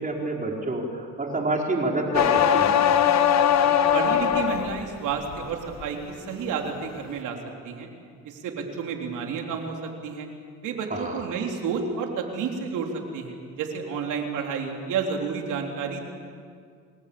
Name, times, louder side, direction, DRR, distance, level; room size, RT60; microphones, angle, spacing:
voice 1, 0.0-2.9 10.9-11.2, right 2 dB, 25° right, 0 dB, 4.4 m, -28 dB
sound 1, 2.1-4.9 5.3-5.8, left 9 dB, 60° left, 1.2 m, -20 dB
voice 2, 3.9-7.4 7.6-7.9 8.2-10.3 10.6-16.0, right 6 dB, 90° right, 2 dB, 3.9 m, -30 dB
26.5 x 20.0 x 8.7 m, 2.1 s
cardioid pair, 90°, 30 cm